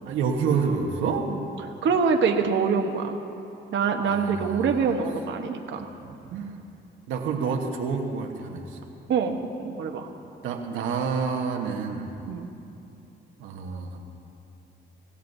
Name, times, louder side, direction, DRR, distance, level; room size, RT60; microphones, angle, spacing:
voice 1, 0.0-1.3 4.0-4.7 6.3-6.6 7.1-8.8 10.4-12.2 13.4-14.0, right 5 dB, 90° right, 2 dB, 1.1 m, -28 dB
voice 2, 1.8-3.2 3.7-5.9 9.1-10.1 12.3-12.5, right 5 dB, 65° right, 3 dB, 1.0 m, -25 dB
23.0 x 15.5 x 2.7 m, 2.8 s
cardioid pair, 90°, 20 cm